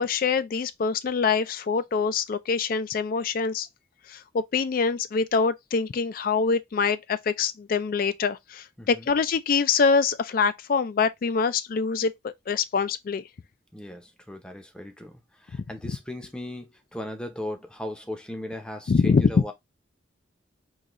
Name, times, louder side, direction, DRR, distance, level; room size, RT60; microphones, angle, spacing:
voice 1, 0.0-3.7 4.1-13.2 18.9-19.4, left 5 dB, 50° left, 0.3 m, -24 dB
voice 2, 8.8-9.1 13.7-19.5, left 1 dB, 5° left, 0.6 m, -37 dB
3.9 x 2.7 x 3.0 m
head